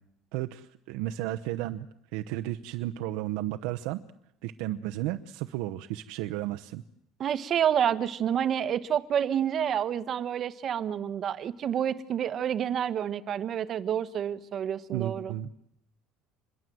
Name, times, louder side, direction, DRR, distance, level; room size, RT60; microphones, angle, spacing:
voice 1, 0.3-1.9 2.1-4.0 4.4-6.8 14.9-15.5, right 14 dB, 80° right, 7 dB, 0.9 m, -33 dB
voice 2, 7.2-15.3, right 9 dB, 35° right, 14 dB, 1.3 m, -28 dB
27.0 x 22.0 x 7.8 m, 0.77 s
cardioid pair, 150°, 0 cm